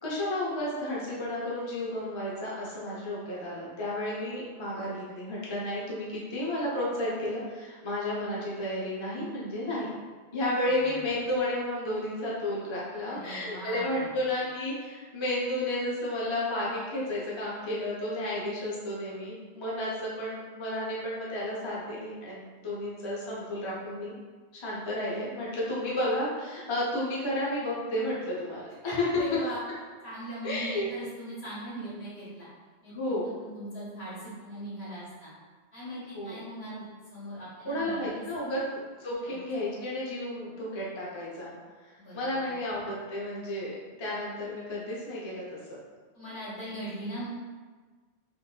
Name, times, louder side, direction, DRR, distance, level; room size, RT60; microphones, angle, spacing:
voice 1, 0.0-10.0 10.3-24.2 24.5-29.1 29.3-29.4 30.4-30.9 32.9-33.3 36.1-36.5 37.7-41.5 41.8-45.6, left 1 dB, 35° left, -6 dB, 0.6 m, -32 dB
voice 2, 13.0-14.2 28.8-29.6 30.0-32.5 32.8-35.3 35.7-36.8 37.1-38.6 39.3-39.4 42.0-42.5 46.1-47.3, equal, 70° left, -8 dB, 1.6 m, -40 dB
3.7 x 2.6 x 2.3 m, 1.4 s
omnidirectional pair, 1.1 m